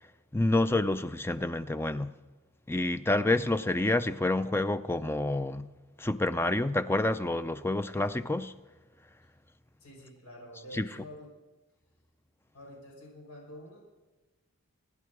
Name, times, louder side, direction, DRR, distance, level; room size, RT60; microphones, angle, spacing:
voice 1, 0.3-2.1 2.7-5.7 6.0-8.5 10.7-10.9, left 2 dB, 10° left, 0.4 m, -28 dB
voice 2, 9.8-11.3 12.5-13.8, left 1 dB, 85° left, 6.0 m, -48 dB
26.0 x 11.0 x 4.8 m
head